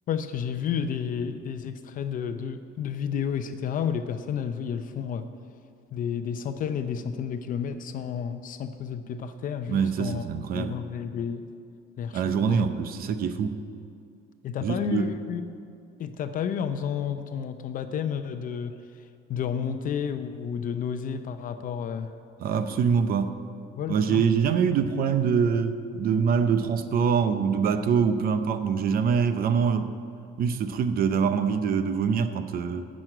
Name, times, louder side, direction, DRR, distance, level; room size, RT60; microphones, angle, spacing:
voice 1, 0.1-5.3 5.9-10.3 10.5-11.5 12.0-12.7 14.4-15.4 16.0-18.8 19.3-22.1 23.7-24.2, left 7 dB, 45° left, 9 dB, 0.6 m, -31 dB
voice 2, 9.7-10.8 12.1-13.6 14.6-15.1 22.4-23.3 23.9-29.9 30.4-32.9, right 6 dB, 50° right, 10 dB, 0.7 m, -24 dB
10.5 x 6.3 x 9.0 m, 2.5 s
cardioid pair, 145°, 19 cm